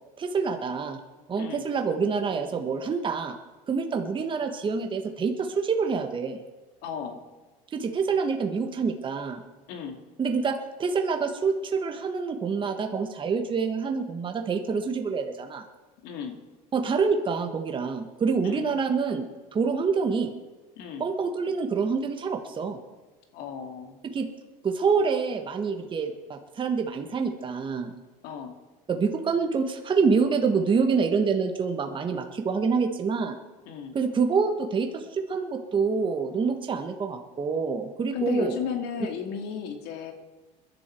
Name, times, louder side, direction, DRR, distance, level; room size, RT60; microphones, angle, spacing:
voice 1, 0.2-1.0 1.3-3.4 3.7-6.4 7.7-9.4 10.2-15.6 16.7-20.3 21.0-22.8 24.1-24.3 24.6-27.9 28.9-33.4 33.9-38.6, right 5 dB, 30° right, 4 dB, 1.4 m, -26 dB
voice 2, 6.8-7.2 9.7-10.0 16.0-16.4 18.4-18.7 20.8-21.0 23.3-24.0 28.2-28.5 33.7-34.0 38.1-40.1, left 7 dB, 70° left, 5 dB, 2.4 m, -34 dB
21.5 x 11.0 x 4.6 m, 1.2 s
supercardioid pair, 110°, 17 cm